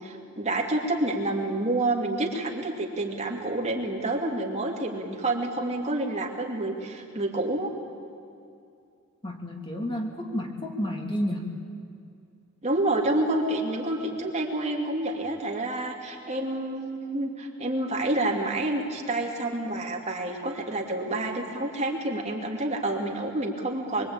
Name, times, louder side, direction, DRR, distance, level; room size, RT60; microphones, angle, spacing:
voice 1, 0.0-7.7 12.6-24.1, right 2 dB, 30° right, 0 dB, 2.7 m, -28 dB
voice 2, 9.2-11.5, equal, 25° left, 1 dB, 2.7 m, -31 dB
24.0 x 23.5 x 8.9 m, 2.4 s
head